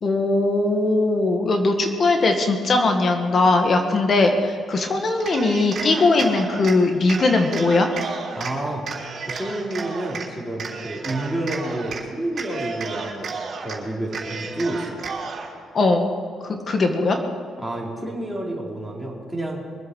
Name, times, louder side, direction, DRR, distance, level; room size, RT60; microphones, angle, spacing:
voice 1, 0.0-7.9 15.7-16.1 16.5-17.2, left 2 dB, 45° left, 4 dB, 1.7 m, -20 dB
Cheering, 5.2-6.8 7.1-8.5 8.8-10.3 10.6-12.0 12.3-13.8 14.1-15.5, right 4 dB, 55° right, 3.5 m, -32 dB
voice 2, 8.3-8.8 9.3-13.4 13.6-14.8 17.6-19.7, right 1 dB, 5° right, -4 dB, 4.4 m, -29 dB
23.0 x 8.0 x 6.3 m, 2.2 s
cardioid pair, 90°, 0 cm